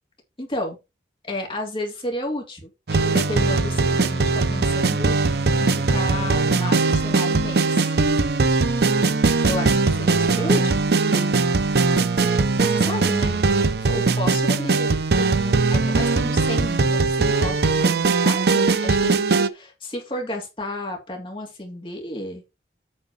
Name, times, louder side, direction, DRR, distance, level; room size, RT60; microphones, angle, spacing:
voice 1, 0.4-0.8 1.2-2.7 3.0-7.9 9.4-11.4 12.7-13.4 13.8-22.4, left 1 dB, 30° left, 1 dB, 2.9 m, -32 dB
sound 1, 2.9-19.5, right 3 dB, 65° right, 0.7 m, -20 dB
8.6 x 4.2 x 5.6 m, 0.26 s
head